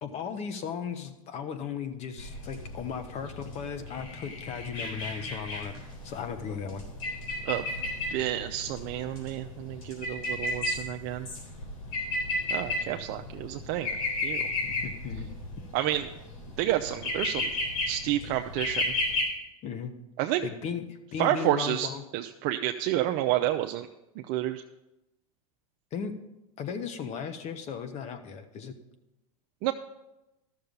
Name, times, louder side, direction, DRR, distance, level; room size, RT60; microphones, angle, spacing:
voice 1, 0.0-5.7 6.0-6.8 14.6-15.3 19.6-19.9 20.4-22.0 25.9-26.1 26.6-28.7, left 7 dB, 40° left, 8 dB, 1.2 m, -36 dB
sound 1, 2.2-19.2, left 2 dB, 75° left, 3.8 m, -34 dB
voice 2, 8.1-11.3 12.5-13.9 14.2-14.5 15.7-16.1 16.6-17.5 17.9-18.8 20.2-20.4 21.2-23.9 24.3-24.6 29.6-29.7, right 13 dB, 50° right, 5 dB, 0.5 m, -29 dB
13.0 x 6.7 x 5.4 m, 0.95 s
supercardioid pair, 120°, 18 cm